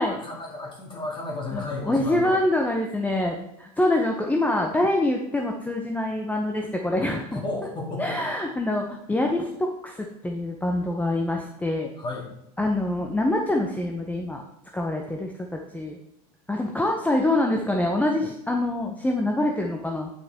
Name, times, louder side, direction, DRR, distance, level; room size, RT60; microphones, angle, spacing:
voice 1, 0.0-2.4 7.3-8.2 12.0-12.3, left 2 dB, 25° left, 0 dB, 2.3 m, -33 dB
voice 2, 1.5-7.4 8.0-11.9 12.6-14.4 14.7-16.0 16.5-20.1, left 1 dB, 10° left, 1 dB, 0.8 m, -25 dB
9.1 x 5.7 x 3.5 m, 0.83 s
supercardioid pair, 110°, 20 cm